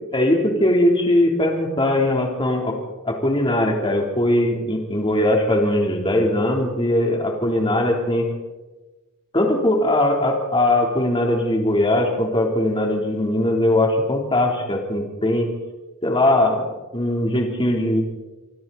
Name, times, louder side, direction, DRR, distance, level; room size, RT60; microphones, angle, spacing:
voice 1, 0.1-2.7 3.0-8.3 9.3-15.5 16.0-16.6 16.9-18.0, left 1 dB, 25° left, 1 dB, 3.7 m, -20 dB
27.0 x 23.5 x 4.3 m, 1.1 s
head